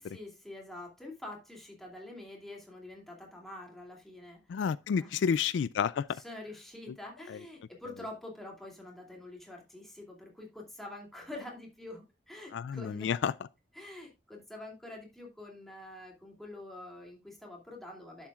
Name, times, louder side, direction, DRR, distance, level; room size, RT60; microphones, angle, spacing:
voice 1, 0.1-4.4 5.0-5.4 6.1-13.1 13.7-18.3, left 1 dB, ahead, 2.6 m, -46 dB
voice 2, 4.5-6.1 7.3-7.4 12.5-13.3, left 7 dB, 80° left, 0.3 m, -30 dB
11.0 x 7.2 x 2.4 m
head